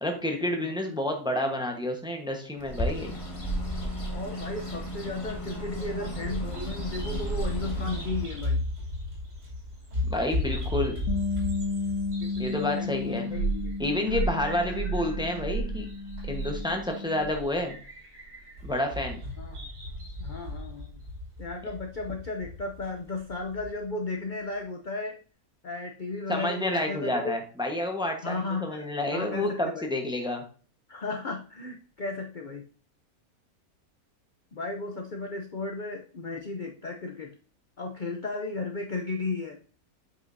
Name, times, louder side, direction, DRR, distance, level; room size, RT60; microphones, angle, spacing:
voice 1, 0.0-3.1 10.1-11.0 12.4-13.3 13.8-15.8 16.3-17.8 18.6-19.2 26.3-30.4, left 1 dB, 5° right, 3 dB, 1.0 m, -29 dB
Bird, 2.6-8.5, right 1 dB, 25° left, 1.3 m, -34 dB
voice 2, 4.1-8.6 12.2-13.8 14.6-14.7 19.4-19.6 20.2-21.0 21.4-25.1 25.6-27.3 28.2-29.9 30.9-32.6 34.5-37.3 37.8-39.6, left 3 dB, 45° left, 3 dB, 0.7 m, -35 dB
Bird vocalization bird call bird song, 5.6-23.7, equal, 65° right, 3.2 m, -34 dB
Bass guitar, 11.1-17.3, left 4 dB, 70° left, 1.0 m, -34 dB
8.1 x 5.5 x 2.7 m, 0.39 s
omnidirectional pair, 1.6 m